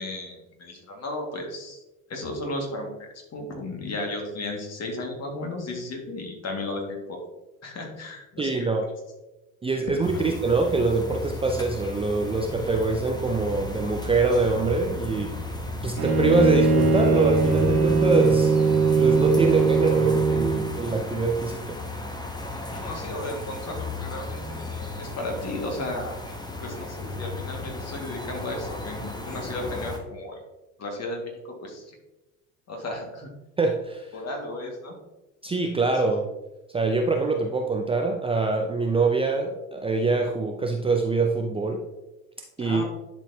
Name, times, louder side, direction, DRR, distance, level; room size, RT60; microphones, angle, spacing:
voice 1, 0.0-1.8 2.1-2.9 3.3-7.2 7.6-8.7 10.1-10.3 22.5-26.1 26.6-30.4 30.8-32.0 32.7-33.3 34.1-34.9 42.6-42.8, left 2 dB, 35° left, 1 dB, 2.0 m, -34 dB
voice 2, 8.4-8.9 9.6-15.3 15.8-18.6 19.0-21.8 33.6-34.1 35.4-36.3 36.7-41.8 42.6-42.8, right 3 dB, 15° right, 2 dB, 0.6 m, -24 dB
sound 1, 10.0-30.0, left 2 dB, 10° left, 1.1 m, -34 dB
Bowed string instrument, 16.0-20.7, right 4 dB, 90° right, 1.4 m, -21 dB
10.5 x 4.4 x 2.9 m, 1.0 s
hypercardioid pair, 70°, 42 cm